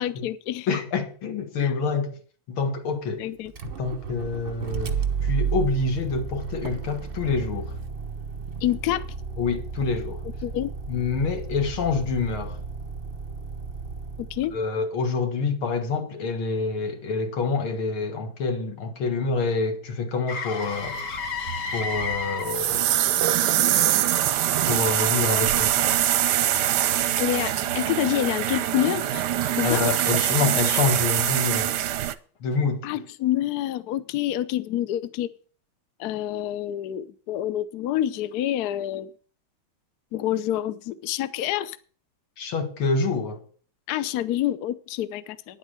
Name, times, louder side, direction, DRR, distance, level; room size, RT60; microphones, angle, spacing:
voice 1, 0.0-0.7 1.6-1.7 3.2-3.5 8.6-9.1 10.4-10.7 14.2-14.5 27.2-29.2 29.6-29.8 32.8-35.3 36.0-39.1 40.1-41.8 43.9-45.6, left 12 dB, 70° left, 1.0 m, -27 dB
voice 2, 0.7-2.2 2.5-3.3 3.8-4.9 5.2-7.8 9.4-10.2 10.9-12.6 14.5-21.0 21.7-22.9 23.7-23.9 24.7-25.8 29.6-31.8 32.4-32.9 42.4-43.4, left 4 dB, 85° left, 2.5 m, -27 dB
Motor vehicle (road), 3.5-14.6, right 6 dB, 35° right, 0.9 m, -32 dB
Motor vehicle (road) 2, 20.3-28.2 32.5-32.7, left 4 dB, 45° left, 1.3 m, -36 dB
sound 1, 20.9-32.1, right 12 dB, 70° right, 1.1 m, -23 dB
10.0 x 8.2 x 6.4 m
omnidirectional pair, 2.2 m